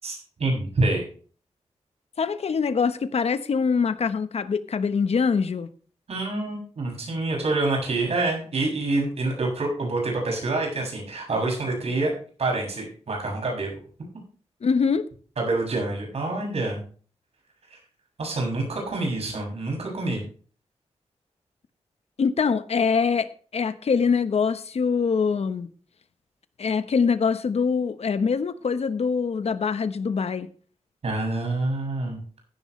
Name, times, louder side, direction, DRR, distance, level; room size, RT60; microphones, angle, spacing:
voice 1, 0.0-1.1 6.1-12.1 12.4-13.8 15.4-16.8 17.7-17.8 18.2-20.2 31.0-32.2, right 2 dB, 65° right, 6.9 m, -27 dB
voice 2, 2.2-5.7 14.6-15.1 22.2-25.7 26.6-30.5, left 5 dB, 65° left, 1.1 m, -24 dB
16.0 x 10.5 x 3.2 m
wide cardioid pair, 105°, 11 cm